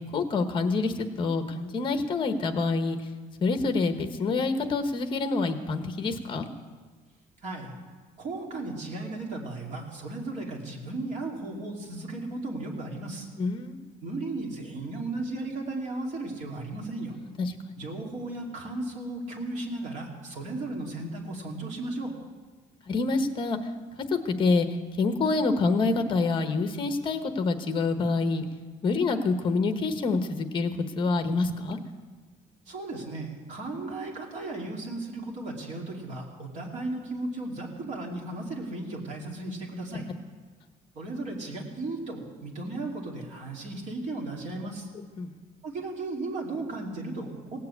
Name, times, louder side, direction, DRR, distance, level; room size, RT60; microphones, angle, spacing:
voice 1, 0.0-3.0 3.4-6.5 13.4-13.8 17.4-17.5 22.9-23.6 24.1-24.7 25.0-28.4 28.8-31.8 45.2-45.3, left 3 dB, 35° left, 8 dB, 1.1 m, -26 dB
voice 2, 7.4-7.7 8.2-13.3 14.0-17.2 17.8-22.1 32.7-40.1 40.9-44.9 45.6-47.6, right 2 dB, 50° right, 0 dB, 2.7 m, -35 dB
17.5 x 7.7 x 8.4 m, 1.4 s
cardioid pair, 165°, 15 cm